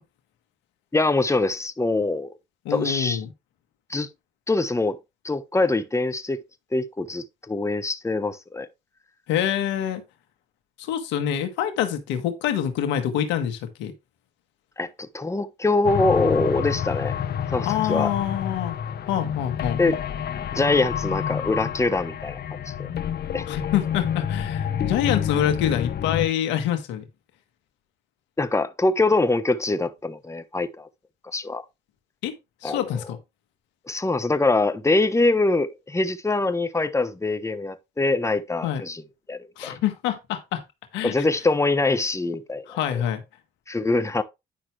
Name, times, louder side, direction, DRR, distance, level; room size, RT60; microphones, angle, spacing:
voice 1, 0.9-2.3 2.7-3.2 3.9-4.1 4.5-5.0 5.2-6.4 6.7-8.7 14.8-17.1 17.5-18.1 19.8-20.0 20.5-22.4 22.7-22.9 23.3-23.4 28.4-30.9 31.3-31.6 32.6-32.8 33.9-39.0 39.3-39.8 41.0-42.6 42.9-43.0 43.7-44.2, left 2 dB, 15° left, 1.1 m, -24 dB
voice 2, 2.6-3.3 9.3-10.0 10.8-13.9 17.6-18.7 19.1-19.8 23.5-27.0 32.2-32.3 32.6-33.2 38.6-38.8 39.6-40.6 40.9-41.1 42.7-43.2, left 10 dB, 90° left, 1.5 m, -26 dB
sound 1, 15.8-26.3, left 8 dB, 60° left, 1.0 m, -29 dB
10.0 x 5.8 x 3.3 m
supercardioid pair, 60°, 18 cm